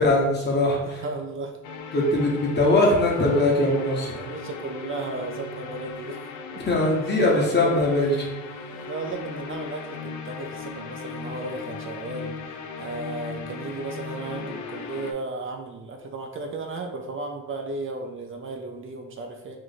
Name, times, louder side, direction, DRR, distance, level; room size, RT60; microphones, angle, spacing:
voice 1, 0.0-1.0 1.9-4.2 6.6-8.2, left 1 dB, 35° left, -1 dB, 1.2 m, -21 dB
voice 2, 0.8-1.5 4.1-6.2 6.5-6.6 7.5-7.8 8.7-19.6, right 3 dB, 45° right, 3 dB, 0.5 m, -35 dB
sound 1, 1.6-15.1, left 4 dB, 70° left, 0.5 m, -37 dB
3.1 x 2.5 x 4.0 m, 0.97 s
cardioid pair, 90°, 30 cm